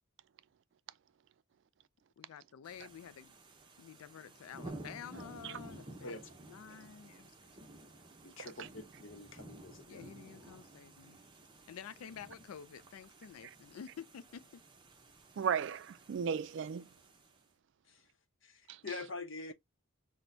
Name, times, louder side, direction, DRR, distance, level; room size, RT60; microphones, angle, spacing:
voice 1, 2.2-3.4 3.8-6.2 6.5-7.3 9.9-11.3 11.7-14.6, left 8 dB, 80° left, 0.3 m, -50 dB
sound 1, 2.6-17.4, right 2 dB, 20° right, 0.7 m, -54 dB
voice 2, 8.2-10.0 17.9-18.0 18.4-19.5, left 3 dB, 60° left, 0.8 m, -45 dB
voice 3, 15.4-16.9 18.7-18.8, right 7 dB, 55° right, 0.3 m, -36 dB
6.0 x 2.1 x 2.6 m
head